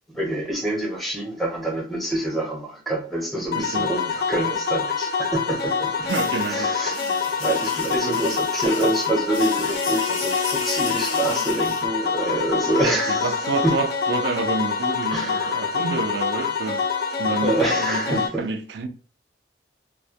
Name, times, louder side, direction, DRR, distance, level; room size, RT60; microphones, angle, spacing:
voice 1, 0.1-6.0 6.5-13.8 15.1-15.7 17.4-18.5, right 1 dB, ahead, 0.6 m, -26 dB
sound 1, 3.5-18.3, left 5 dB, 55° left, 0.3 m, -26 dB
voice 2, 3.5-3.9 6.0-6.7 8.0-8.2 12.8-16.8 17.2-18.9, right 4 dB, 65° right, 0.4 m, -28 dB
sound 2, 6.1-11.8, left 4 dB, 90° left, 0.7 m, -32 dB
2.2 x 2.1 x 2.8 m
head